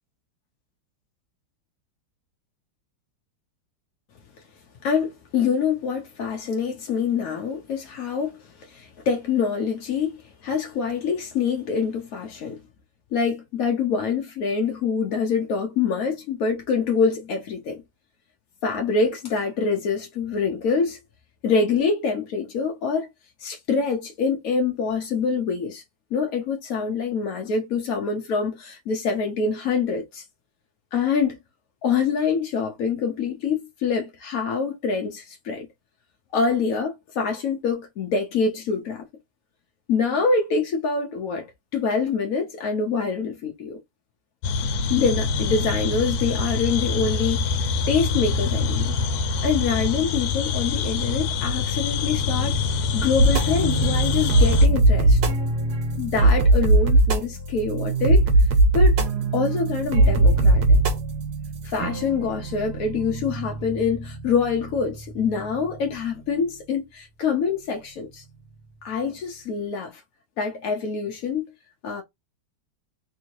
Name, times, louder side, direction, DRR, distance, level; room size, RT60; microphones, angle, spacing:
voice 1, 4.8-12.6 13.1-17.8 18.6-21.0 21.4-23.1 23.4-25.8 26.1-30.2 30.9-31.4 31.8-35.7 36.3-39.0 39.9-41.5 41.7-43.8 44.9-49.0 49.4-55.2 56.0-58.3 58.7-59.0 59.3-60.6 61.6-68.2 68.8-70.0 70.4-71.4 71.8-72.0, left 5 dB, 65° left, 0.9 m, -25 dB
sound 1, 44.4-54.7, left 4 dB, 80° left, 1.4 m, -25 dB
sound 2, 53.2-65.8, right 2 dB, 65° right, 1.2 m, -20 dB
3.6 x 2.7 x 2.8 m
omnidirectional pair, 2.2 m